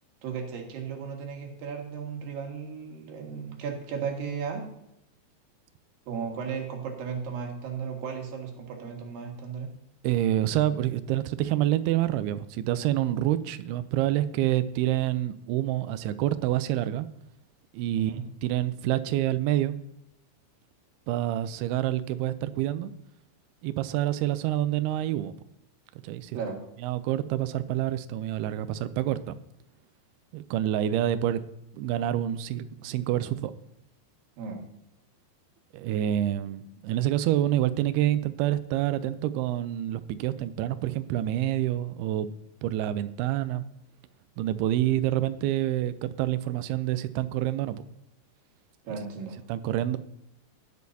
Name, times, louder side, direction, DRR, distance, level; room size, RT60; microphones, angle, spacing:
voice 1, 0.2-4.7 6.1-9.7 17.9-18.2 26.3-26.6 34.4-34.6 48.8-49.4, right 6 dB, 60° right, 1 dB, 3.1 m, -35 dB
voice 2, 10.0-17.1 17.7-18.1 18.4-19.8 21.1-22.9 23.6-25.4 26.0-26.4 26.8-29.4 30.3-31.4 31.7-33.5 35.7-42.3 42.6-43.6 44.4-47.8 49.5-50.0, right 13 dB, 90° right, 13 dB, 2.2 m, -27 dB
19.0 x 6.5 x 2.7 m, 0.86 s
omnidirectional pair, 5.0 m